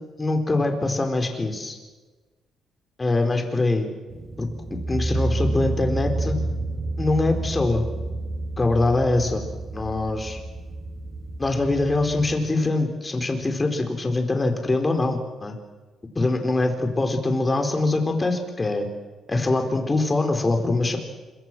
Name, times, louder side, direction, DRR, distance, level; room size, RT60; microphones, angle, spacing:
voice 1, 0.2-1.8 3.0-3.9 4.4-6.4 7.0-7.8 8.6-9.4 9.7-10.4 11.4-15.5 16.2-18.9 19.3-21.0, left 2 dB, 25° left, 5 dB, 4.3 m, -23 dB
sound 1, 4.1-12.3, right 2 dB, 30° right, 7.4 m, -30 dB
26.0 x 23.5 x 6.2 m, 1.3 s
cardioid pair, 90°, 0 cm